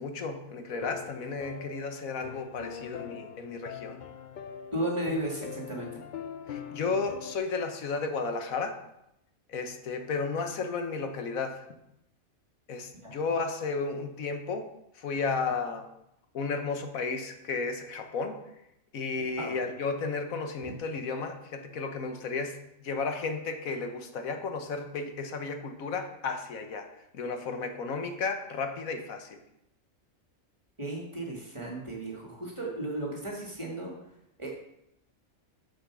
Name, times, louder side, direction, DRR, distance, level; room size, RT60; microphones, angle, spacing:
voice 1, 0.0-4.0 6.5-8.8 9.5-11.7 12.7-14.7 14.9-15.9 16.3-18.4 18.9-29.4, left 4 dB, 85° left, 6 dB, 1.5 m, -33 dB
sound 1, 0.7-7.4, left 8 dB, 60° left, 0.5 m, -43 dB
voice 2, 4.7-6.0 13.0-13.1 19.4-19.6 30.8-33.9 34.4-34.7, right 1 dB, 20° right, -2 dB, 2.2 m, -34 dB
7.2 x 7.1 x 6.1 m, 0.82 s
omnidirectional pair, 1.4 m